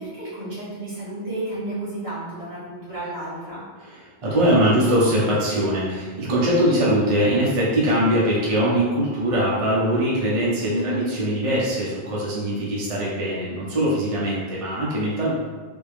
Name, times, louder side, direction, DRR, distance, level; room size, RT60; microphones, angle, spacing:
voice 1, 0.0-3.6 10.7-11.0, right 1 dB, 70° right, -9 dB, 1.8 m, -31 dB
voice 2, 3.8-15.3, equal, 35° right, -6 dB, 0.7 m, -22 dB
3.5 x 2.9 x 3.2 m, 1.5 s
omnidirectional pair, 1.1 m